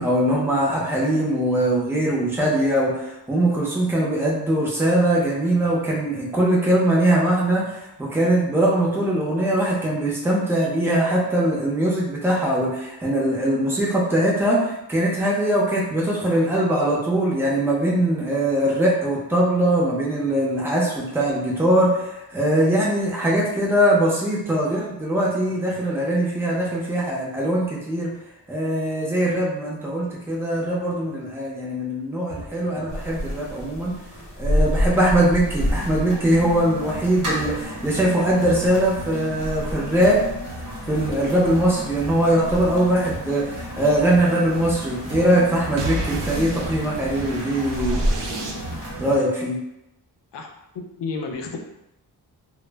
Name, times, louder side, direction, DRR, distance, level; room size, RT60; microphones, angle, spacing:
voice 1, 0.0-28.1 28.5-34.0 34.4-40.2 40.8-48.4 49.0-49.6, right 1 dB, 5° right, -5 dB, 0.5 m, -21 dB
sound 1, 32.3-49.2, equal, 50° right, 0.8 m, -35 dB
sound 2, 32.9-48.9, equal, 45° left, 0.8 m, -31 dB
sound 3, 45.8-49.0, right 2 dB, 80° right, 0.5 m, -32 dB
voice 2, 50.7-51.6, left 4 dB, 80° left, 2 dB, 0.5 m, -31 dB
2.0 x 2.0 x 3.3 m, 0.88 s
wide cardioid pair, 135°, 42 cm